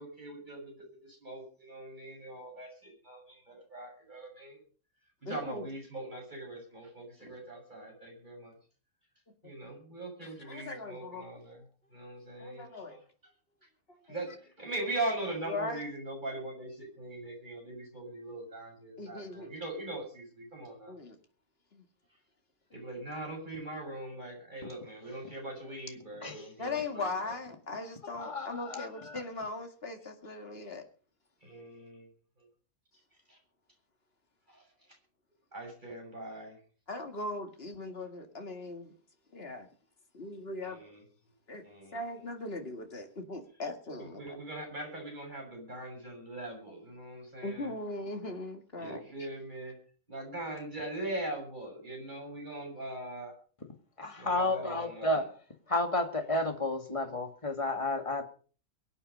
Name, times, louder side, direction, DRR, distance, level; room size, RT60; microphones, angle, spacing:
voice 1, 0.0-4.6 5.2-8.5 9.4-11.6 11.9-13.0 14.1-14.3 14.6-20.9 22.7-27.3 31.4-32.1 32.4-32.5 33.3-33.4 34.5-34.6 35.5-36.6 40.6-41.0 41.6-42.0 44.0-47.7 48.8-49.8 50.1-53.3 54.2-55.2, right 2 dB, 30° right, 7.5 m, -41 dB
voice 2, 5.3-5.6 7.2-7.4 9.4-9.5 10.2-11.3 12.4-13.0 13.9-14.0 15.5-15.8 19.0-19.5 20.9-21.2 21.7-21.8 26.6-30.8 36.9-38.9 39.3-39.7 40.1-40.8 41.5-41.6 41.9-44.4 47.4-49.0, left 2 dB, 40° left, 2.3 m, -39 dB
voice 3, 28.2-29.2 54.0-55.3 55.7-58.2, left 2 dB, 20° left, 2.1 m, -31 dB
23.0 x 8.8 x 5.5 m
omnidirectional pair, 1.5 m